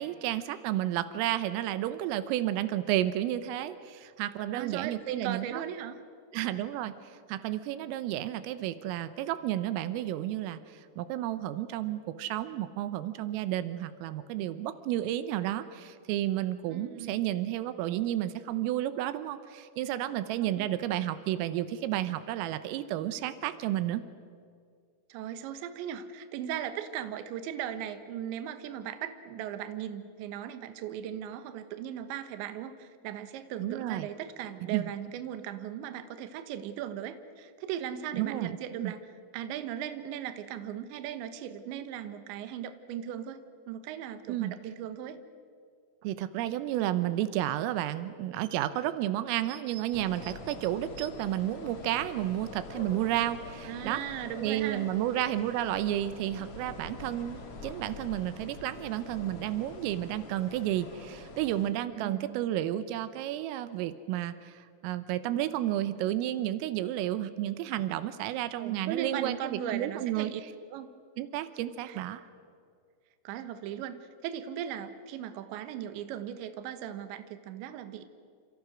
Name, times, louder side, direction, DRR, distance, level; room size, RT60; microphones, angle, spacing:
voice 1, 0.0-5.6 6.3-24.0 33.6-34.1 34.6-34.9 38.1-38.9 44.3-44.5 46.0-54.0 54.4-70.3 71.2-72.2, right 13 dB, 90° right, 12 dB, 3.6 m, -32 dB
voice 2, 4.5-6.0 16.7-17.2 20.4-20.7 25.1-39.0 39.3-45.2 53.6-54.9 62.0-62.4 68.6-70.4 70.7-70.9 71.9-72.0 73.2-78.1, right 10 dB, 75° right, 9 dB, 3.3 m, -38 dB
sound 1, 49.9-61.7, left 3 dB, 55° left, 1.6 m, -45 dB
29.0 x 27.5 x 6.3 m, 2.2 s
omnidirectional pair, 5.8 m